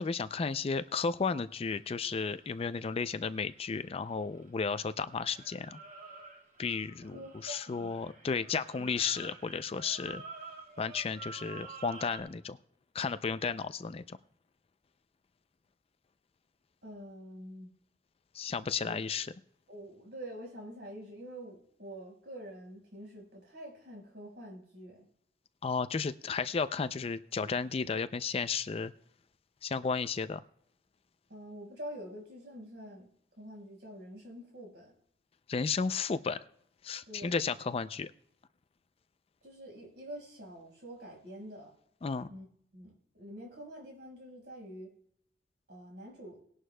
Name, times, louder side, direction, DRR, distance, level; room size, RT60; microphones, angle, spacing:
voice 1, 0.0-5.8 6.6-10.2 10.8-12.6 12.9-14.2 18.3-19.3 25.6-28.9 29.6-30.4 35.5-36.4 36.8-38.1 42.0-42.3, left 5 dB, 35° left, 13 dB, 0.4 m, -33 dB
sound 1, 1.7-4.8 5.1-12.2, right 4 dB, 45° right, 1.9 m, -50 dB
voice 2, 7.0-7.9 8.8-8.9 16.8-17.7 18.8-19.0 19.7-25.1 31.3-33.1 33.4-34.9 37.1-37.4 39.4-41.7 42.3-42.4 42.7-44.9 45.7-46.4, equal, 70° right, 0 dB, 4.9 m, -46 dB
19.5 x 11.0 x 2.2 m, 0.68 s
head